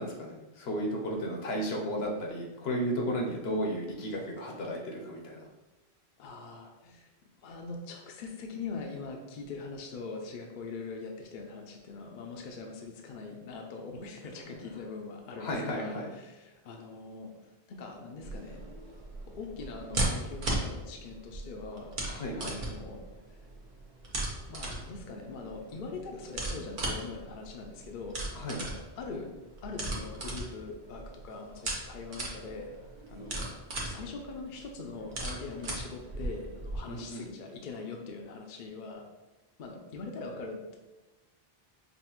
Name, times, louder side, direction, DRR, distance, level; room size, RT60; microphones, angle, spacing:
voice 1, 0.0-5.4 15.4-16.1 22.1-22.6 28.3-28.6 36.9-37.3, equal, 75° left, 0 dB, 1.0 m, -34 dB
voice 2, 6.2-7.1 7.4-17.3 17.7-18.6 19.2-22.0 22.4-23.0 24.5-28.2 28.4-29.3 29.6-32.7 33.1-33.5 33.8-39.0 39.6-40.8, left 4 dB, 60° left, 2 dB, 0.6 m, -42 dB
sound 1, 18.2-36.8, right 2 dB, 55° right, 0.9 m, -37 dB
5.2 x 2.3 x 3.0 m, 1.1 s
omnidirectional pair, 1.1 m